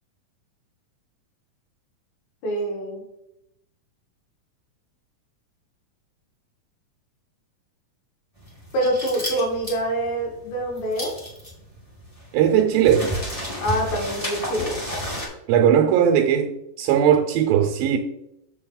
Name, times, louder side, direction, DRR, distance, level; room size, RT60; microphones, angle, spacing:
voice 1, 2.4-3.0 8.7-11.1 13.6-14.7, right 1 dB, 85° left, 3.8 m, -25 dB
sound 1, 8.4-15.3, equal, 15° left, 1.7 m, -32 dB
voice 2, 12.3-13.1 15.5-18.0, right 9 dB, 90° right, 2.6 m, -18 dB
7.4 x 6.5 x 4.0 m
omnidirectional pair, 4.1 m